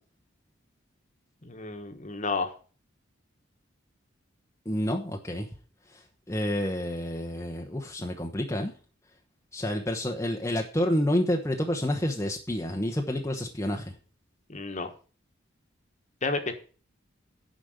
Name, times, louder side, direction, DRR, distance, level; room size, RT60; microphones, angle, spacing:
voice 1, 1.4-2.5 14.5-14.9 16.2-16.5, left 3 dB, 35° left, 7 dB, 1.4 m, -31 dB
voice 2, 4.6-5.5 5.9-6.0 6.3-8.7 9.5-13.9, left 1 dB, 15° left, 1 dB, 1.0 m, -29 dB
10.0 x 5.2 x 7.9 m, 0.39 s
head